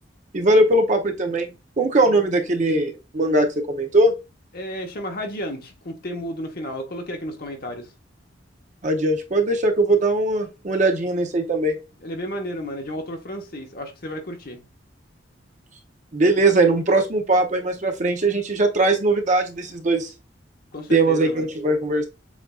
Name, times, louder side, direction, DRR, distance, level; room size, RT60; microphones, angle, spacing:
voice 1, 0.3-4.2 8.8-11.8 16.1-20.1 20.9-22.1, right 2 dB, 40° right, 0.7 m, -20 dB
voice 2, 4.5-7.9 12.0-14.6 20.7-21.5, equal, 50° left, 1.0 m, -32 dB
7.2 x 2.6 x 2.3 m
head